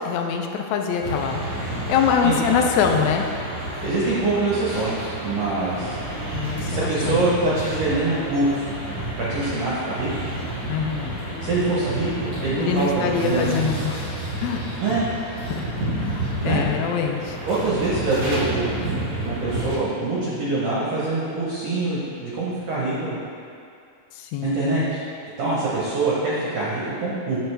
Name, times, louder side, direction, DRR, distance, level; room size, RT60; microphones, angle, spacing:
voice 1, 0.0-3.3 6.3-7.3 10.7-11.2 12.6-14.1 14.4-14.9 15.5-15.6 16.0-17.4 24.1-24.9, left 6 dB, 85° left, 3 dB, 1.6 m, -24 dB
sound 1, 1.0-19.8, right 1 dB, 40° right, 1.2 m, -30 dB
voice 2, 2.2-2.6 3.8-6.0 6.7-8.7 9.2-10.1 11.4-13.6 14.8-15.0 16.4-16.7 17.5-18.7 19.2-23.2 24.4-25.0 25.4-27.4, right 2 dB, 65° right, -8 dB, 1.6 m, -24 dB
7.6 x 4.7 x 3.2 m, 2.4 s
omnidirectional pair, 3.8 m